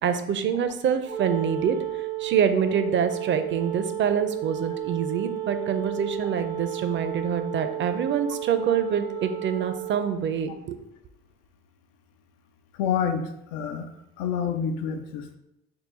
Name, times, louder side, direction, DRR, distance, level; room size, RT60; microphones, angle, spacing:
voice 1, 0.0-10.8, right 7 dB, 40° right, 9 dB, 0.5 m, -26 dB
Wind instrument woodwind instrument, 1.0-10.2, right 15 dB, 85° right, 0.9 m, -33 dB
voice 2, 12.8-13.9 14.2-15.4, left 7 dB, 85° left, 6 dB, 0.5 m, -28 dB
3.8 x 2.2 x 4.3 m, 0.85 s
supercardioid pair, 90°, 30 cm